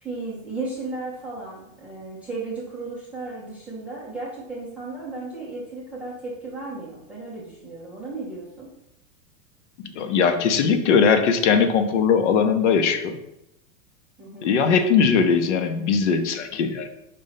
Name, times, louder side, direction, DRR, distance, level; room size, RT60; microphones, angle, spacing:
voice 1, 0.0-8.7 14.2-14.5, right 3 dB, 5° right, -8 dB, 0.5 m, -35 dB
voice 2, 9.8-13.2 14.4-16.9, left 6 dB, 55° left, 7 dB, 0.8 m, -20 dB
5.3 x 4.3 x 5.7 m, 0.84 s
supercardioid pair, 180°, 43 cm